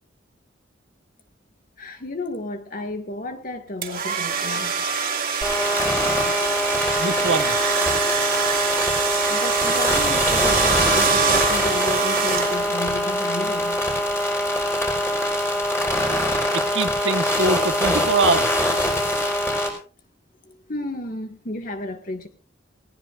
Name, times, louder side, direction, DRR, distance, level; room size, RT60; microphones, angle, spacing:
voice 1, 1.8-4.8 9.3-13.9 20.4-22.3, left 1 dB, 50° left, 5 dB, 2.0 m, -32 dB
sound 1, 3.8-12.9, right 6 dB, 50° right, 2.5 m, -24 dB
sound 2, 5.4-19.7, left 1 dB, 15° left, 4.6 m, -23 dB
voice 2, 7.0-7.6 16.5-18.6, right 3 dB, 85° right, 8 dB, 1.4 m, -23 dB
18.5 x 18.5 x 2.6 m, 0.37 s
head